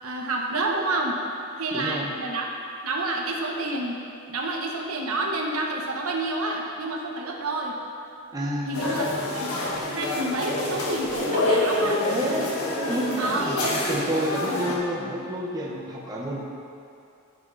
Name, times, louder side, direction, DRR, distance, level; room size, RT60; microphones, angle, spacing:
voice 1, 0.0-1.2 1.6-2.5 2.8-4.0 4.3-7.7 8.7-9.0 9.3-9.6 9.9-12.0 13.2-13.7 14.4-14.7, right 2 dB, 75° right, 0 dB, 1.2 m, -29 dB
voice 2, 1.7-2.1 8.3-8.8 12.1-12.5 12.7-16.4, right 1 dB, 15° right, -4 dB, 1.3 m, -29 dB
sound 1, 8.7-14.8, left 2 dB, 80° left, 1.7 m, -27 dB
15.5 x 6.0 x 4.1 m, 2.6 s
head